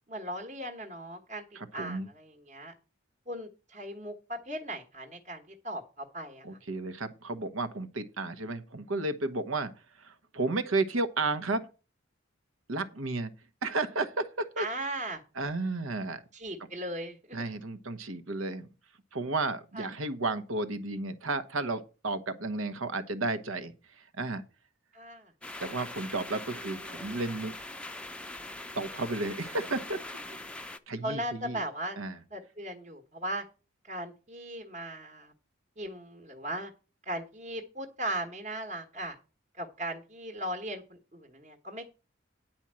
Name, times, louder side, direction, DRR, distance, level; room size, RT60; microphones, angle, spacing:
voice 1, 0.1-1.4 1.7-2.7 3.3-6.4 14.6-15.2 16.3-17.4 19.7-19.9 24.9-25.3 26.8-27.2 31.0-32.0 32.3-33.4 33.8-35.3 35.8-36.7 37.0-39.2 39.6-41.8, right 1 dB, 35° right, 1.3 m, -38 dB
voice 2, 1.5-2.1 6.4-9.7 10.0-11.6 12.7-13.3 13.6-14.7 15.4-16.2 17.3-18.7 19.1-24.4 25.6-27.6 28.7-30.0 30.9-31.6 32.0-32.2, right 3 dB, 75° right, 1.1 m, -33 dB
sound 1, 25.4-30.8, left 2 dB, 5° left, 0.5 m, -42 dB
9.9 x 4.4 x 7.5 m
head